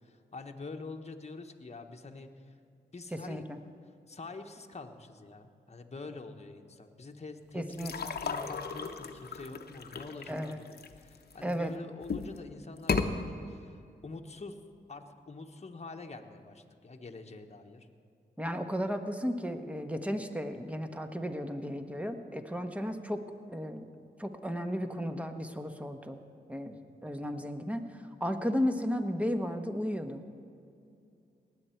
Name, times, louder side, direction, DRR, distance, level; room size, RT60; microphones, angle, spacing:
voice 1, 0.0-2.5 2.9-3.5 4.1-14.6 14.9-17.9, left 3 dB, 35° left, 4 dB, 1.2 m, -46 dB
voice 2, 3.1-3.6 7.5-8.1 10.3-10.6 11.4-11.7 18.4-23.2 23.5-23.8 24.2-26.2 26.5-26.8 27.0-30.2, equal, 5° right, 6 dB, 1.3 m, -34 dB
sound 1, 7.7-11.5 12.0-12.4 12.8-13.1, left 5 dB, 60° left, 0.9 m, -35 dB
19.0 x 8.1 x 4.6 m, 2.5 s
supercardioid pair, 40°, 19 cm